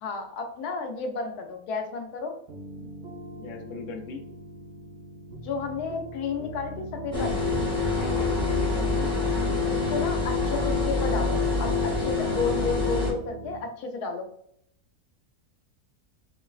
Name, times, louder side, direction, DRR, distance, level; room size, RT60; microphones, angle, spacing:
voice 1, 0.0-2.3 5.4-7.5 9.7-14.3, left 4 dB, 85° left, 4 dB, 1.1 m, -32 dB
sound 1, 2.5-13.6, right 2 dB, 80° right, 1.2 m, -42 dB
voice 2, 3.4-4.2 8.0-9.1, left 4 dB, 65° left, 3 dB, 0.8 m, -38 dB
sound 2, 7.1-13.1, left 3 dB, 5° left, 0.8 m, -26 dB
3.9 x 2.1 x 2.3 m, 0.70 s
omnidirectional pair, 1.6 m